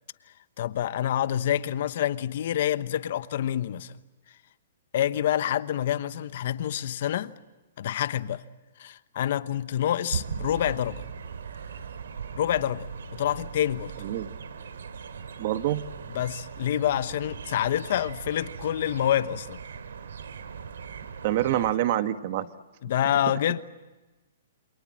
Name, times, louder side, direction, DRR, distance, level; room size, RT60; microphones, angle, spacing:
voice 1, 0.6-4.0 4.9-7.3 7.8-8.4 8.8-11.0 12.4-13.9 16.1-19.6 22.8-23.6, left 11 dB, 55° left, 1.0 m, -27 dB
sound 1, 10.1-21.7, right 6 dB, 80° right, 2.5 m, -39 dB
voice 2, 15.4-15.8 21.2-22.5, right 13 dB, 45° right, 1.3 m, -26 dB
28.5 x 26.0 x 7.5 m
hypercardioid pair, 150°, 0 cm